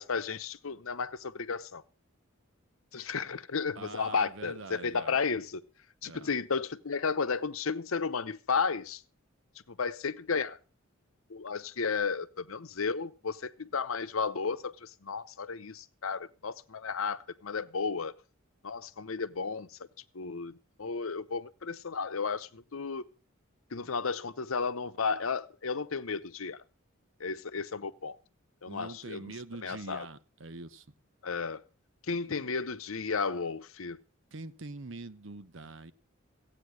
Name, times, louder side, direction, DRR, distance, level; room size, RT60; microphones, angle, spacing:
voice 1, 0.0-1.8 2.9-5.6 6.0-9.0 9.7-10.6 11.3-18.1 18.6-19.8 20.1-23.0 23.7-26.6 27.2-28.2 28.6-29.3 29.6-30.1 31.2-31.6 32.1-34.0, left 5 dB, 85° left, 0.8 m, -33 dB
voice 2, 3.7-5.2 6.0-6.3 28.7-30.9 32.1-32.5 34.3-35.9, right 3 dB, 70° right, 0.9 m, -44 dB
15.0 x 9.0 x 6.3 m
head